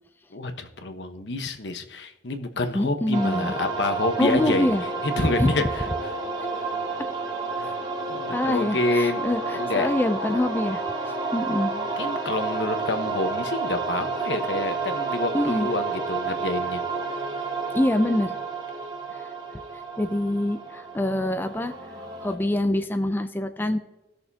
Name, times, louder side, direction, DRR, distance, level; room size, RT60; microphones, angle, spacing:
voice 1, 0.3-4.7 5.0-5.9 7.6-7.7 8.1-9.2 9.5-9.9 11.7-16.8 17.4-17.5, left 2 dB, 80° left, 6 dB, 1.1 m, -28 dB
voice 2, 2.7-3.6 4.2-4.8 5.2-5.5 6.4-6.5 8.3-11.7 15.3-15.7 17.7-18.4 19.1-19.3 20.0-23.8, left 1 dB, 10° left, 8 dB, 0.4 m, -25 dB
sound 1, 3.1-22.3, right 4 dB, 30° right, 2.0 m, -30 dB
18.0 x 6.6 x 2.8 m, 0.98 s
head